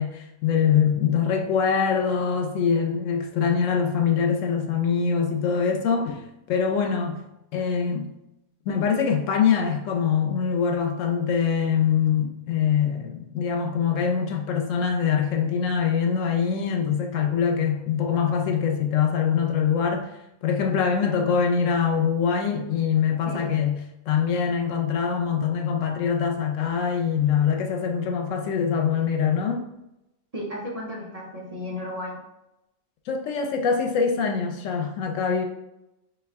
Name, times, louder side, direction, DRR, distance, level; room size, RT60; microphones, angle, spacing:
voice 1, 0.0-6.2 6.5-7.2 7.5-8.1 8.7-20.1 20.4-23.8 24.1-29.7 33.1-35.4, left 7 dB, 85° left, 1.0 m, -23 dB
voice 2, 23.2-23.6 30.3-32.2 34.8-34.9, left 1 dB, 35° right, 0.7 m, -34 dB
5.4 x 2.2 x 3.4 m
omnidirectional pair, 1.3 m